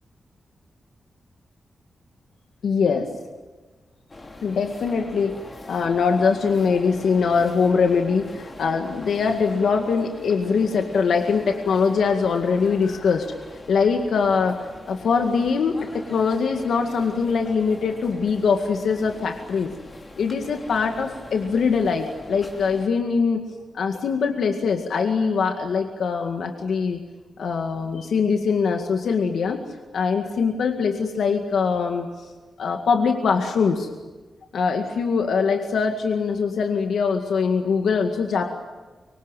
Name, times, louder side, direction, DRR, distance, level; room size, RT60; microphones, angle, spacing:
voice 1, 2.6-3.1 4.4-5.4 5.7-13.3 13.7-14.6 14.9-19.7 20.2-23.4 23.7-27.0 27.4-29.6 29.9-32.3 32.6-33.9 34.5-38.5, left 5 dB, 75° left, 4 dB, 2.0 m, -22 dB
sound 1, 4.1-22.9, left 2 dB, 25° left, 3.2 m, -42 dB
25.0 x 24.5 x 9.2 m, 1.3 s
wide cardioid pair, 150°, 0 cm